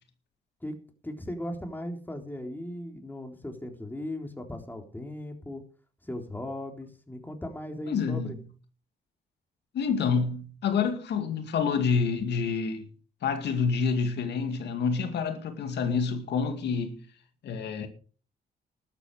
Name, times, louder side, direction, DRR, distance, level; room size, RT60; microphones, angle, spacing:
voice 1, 1.0-5.6 6.0-8.4, left 1 dB, 10° left, 3.7 m, -37 dB
voice 2, 7.9-8.4 9.7-12.9 13.2-17.0 17.4-17.9, left 5 dB, 75° left, 2.2 m, -28 dB
13.0 x 12.5 x 4.9 m
cardioid pair, 80°, 18 cm